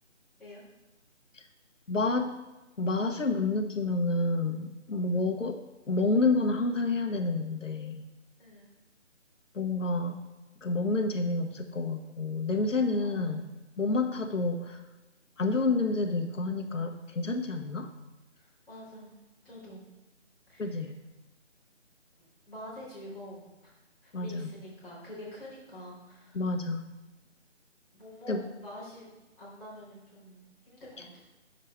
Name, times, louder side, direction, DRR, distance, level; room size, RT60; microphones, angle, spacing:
voice 1, 1.9-2.3 2.8-5.6 5.9-8.0 9.5-10.2 10.6-13.5 13.8-14.8 15.4-17.9 20.6-21.0 24.1-24.5 26.3-26.8 28.3-28.4, left 3 dB, 85° left, 4 dB, 1.2 m, -29 dB
voice 2, 8.4-8.7 13.0-13.5 17.5-17.7 18.4-19.1 19.4-19.8 20.5-20.9 22.5-23.7 24.0-26.4 27.9-29.1 29.4-31.2, equal, ahead, -17 dB, 2.1 m, -47 dB
9.9 x 6.5 x 3.3 m, 1.1 s
figure-of-eight pair, 170°, 37 cm